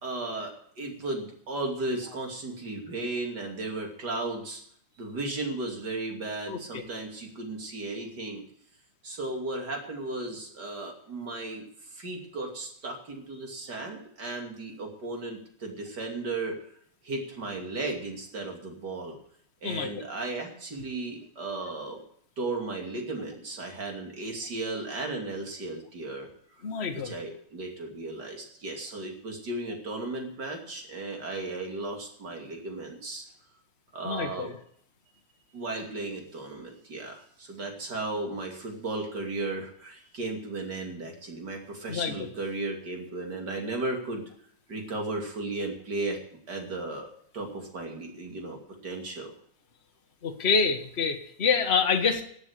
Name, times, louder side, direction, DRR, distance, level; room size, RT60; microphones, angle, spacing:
voice 1, 0.0-4.6 5.0-8.4 9.0-16.6 17.0-19.2 19.6-22.0 22.4-26.3 26.6-26.7 26.9-33.2 33.9-34.5 35.5-44.3 44.7-46.2 46.5-47.1 47.3-49.3, right 2 dB, 35° right, 2 dB, 3.0 m, -35 dB
voice 2, 6.5-6.8 19.6-20.0 26.6-27.1 34.0-34.5 41.9-42.1 50.2-52.2, left 5 dB, 55° left, 4 dB, 0.7 m, -27 dB
14.5 x 8.2 x 8.1 m, 0.65 s
omnidirectional pair, 3.4 m